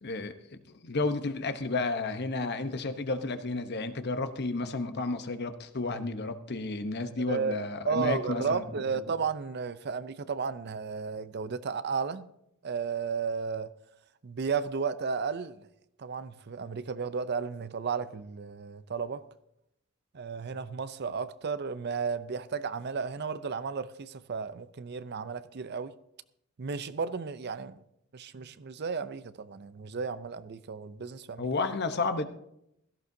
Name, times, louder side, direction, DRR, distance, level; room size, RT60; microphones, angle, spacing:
voice 1, 0.0-9.0 31.4-32.2, left 3 dB, 55° left, 0.9 m, -32 dB
voice 2, 7.2-7.6 7.9-12.3 12.6-13.7 14.2-15.7 16.0-19.2 20.1-25.9 26.6-27.8 28.1-31.5, right 5 dB, 50° right, 0.6 m, -33 dB
16.5 x 14.0 x 2.7 m
head